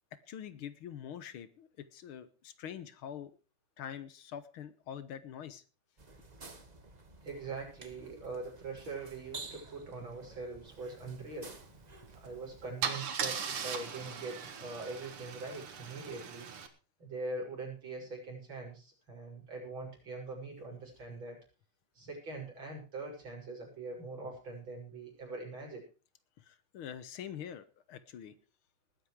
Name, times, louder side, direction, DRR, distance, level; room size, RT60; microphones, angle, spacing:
voice 1, 0.3-3.3 3.8-5.6 26.5-28.3, left 9 dB, 80° left, 14 dB, 1.8 m, -45 dB
sound 1, 6.0-12.7, right 3 dB, 20° right, 1.4 m, -51 dB
voice 2, 7.2-11.5 12.2-16.5 17.0-21.4 22.0-25.8, right 3 dB, 65° right, -1 dB, 7.4 m, -42 dB
Car / Engine starting / Idling, 12.1-12.3 12.8-16.7, right 7 dB, 85° right, 2.6 m, -39 dB
19.5 x 9.1 x 4.7 m, 0.35 s
omnidirectional pair, 2.4 m